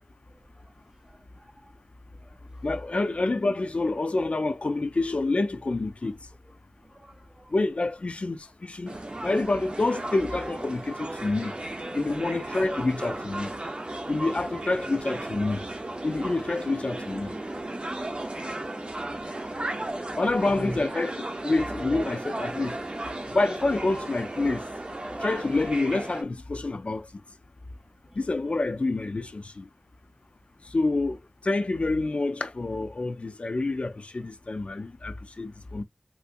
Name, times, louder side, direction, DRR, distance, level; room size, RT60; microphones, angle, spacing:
voice 1, 1.1-1.7 2.2-2.4 6.8-7.5 11.1-11.2 12.1-12.5 14.4-14.5 17.9-18.8 19.5-20.2 20.5-20.8 28.1-28.2, right 1 dB, 30° right, 0.5 m, -44 dB
voice 2, 2.6-6.1 7.5-9.0 9.2-11.5 11.9-13.5 14.1-15.6 16.0-17.4 20.2-22.7 23.3-24.6 25.2-27.1 28.2-29.7 30.7-31.2 31.4-35.8, left 2 dB, 70° left, 0.4 m, -27 dB
sound 1, 8.9-26.2, right 1 dB, 50° right, 0.9 m, -35 dB
3.4 x 2.7 x 2.4 m
wide cardioid pair, 50°, 2 cm